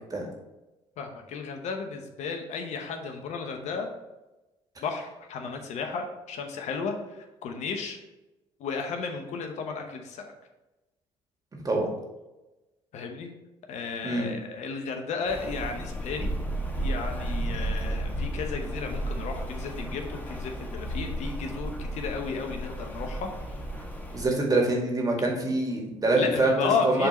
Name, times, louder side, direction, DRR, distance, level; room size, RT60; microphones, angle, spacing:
voice 1, 1.0-3.9 4.8-8.0 8.6-10.2 12.9-13.3 13.7-16.3 16.8-23.6 26.1-27.1, left 5 dB, 65° left, 4 dB, 0.9 m, -33 dB
Rain, 15.3-24.2, right 1 dB, 15° left, 1.4 m, -33 dB
voice 2, 24.1-27.1, right 2 dB, 30° right, 0 dB, 2.1 m, -25 dB
6.8 x 3.9 x 4.2 m, 1.0 s
hypercardioid pair, 60°, 13 cm